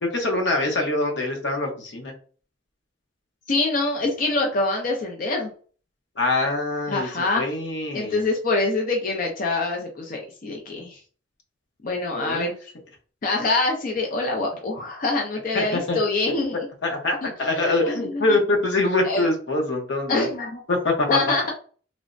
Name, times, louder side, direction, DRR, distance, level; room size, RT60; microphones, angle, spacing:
voice 1, 0.0-2.1 6.2-8.2 12.1-12.5 15.5-16.0 16.8-20.3 20.7-21.1, left 2 dB, 80° left, 2 dB, 0.8 m, -24 dB
voice 2, 3.5-5.5 6.9-7.4 7.9-11.0 11.8-12.5 13.2-16.7 17.2-18.2 19.0-19.3 20.1-20.6 21.1-21.5, left 2 dB, 50° left, 1 dB, 0.5 m, -25 dB
3.2 x 2.0 x 2.5 m, 0.41 s
head